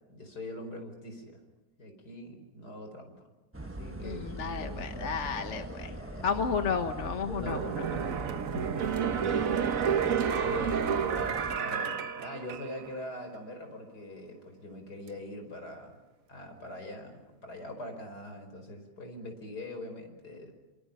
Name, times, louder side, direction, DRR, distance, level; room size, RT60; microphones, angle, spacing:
voice 1, 0.0-1.4 1.8-3.2 3.6-4.3 4.6-6.3 7.3-9.0 10.2-16.0 16.3-20.5, left 1 dB, 60° left, 5 dB, 5.5 m, -43 dB
sound 1, 3.5-11.6, right 1 dB, 10° right, 0.8 m, -41 dB
voice 2, 4.0-5.9 6.2-7.8, left 6 dB, 45° left, 7 dB, 1.4 m, -32 dB
sound 2, 7.4-13.0 13.3-13.4, right 7 dB, 55° right, 1.3 m, -30 dB
28.5 x 27.5 x 5.7 m, 1.1 s
omnidirectional pair, 1.9 m